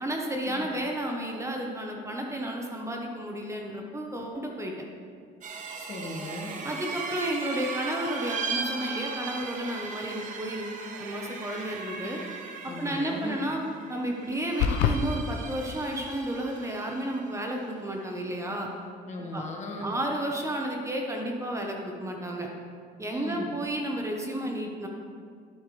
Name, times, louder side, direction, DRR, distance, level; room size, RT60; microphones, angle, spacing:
voice 1, 0.0-4.7 6.6-12.2 12.8-13.6 13.9-18.7 19.3-19.4 19.8-22.5 23.0-24.9, right 1 dB, 15° right, 1 dB, 1.1 m, -32 dB
sound 1, 5.4-17.4, right 4 dB, 50° right, 1.1 m, -38 dB
voice 2, 5.8-6.5 12.6-13.4 19.0-19.9 23.1-23.5, left 1 dB, 45° left, 0 dB, 1.7 m, -37 dB
sound 2, 14.6-15.0, left 8 dB, 90° left, 0.6 m, -23 dB
11.5 x 8.3 x 3.3 m, 2.2 s
cardioid pair, 110°, 17 cm